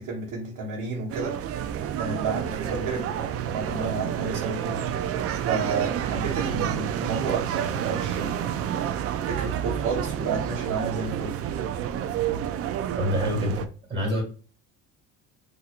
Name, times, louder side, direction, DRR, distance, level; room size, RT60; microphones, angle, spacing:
voice 1, 0.0-9.0 9.2-11.4, right 4 dB, 70° right, 1.1 m, -32 dB
sound 1, 1.1-13.7, right 9 dB, 45° right, 0.4 m, -29 dB
voice 2, 13.0-14.2, left 1 dB, 15° right, 1.7 m, -27 dB
4.2 x 2.6 x 2.4 m
cardioid pair, 110°, 33 cm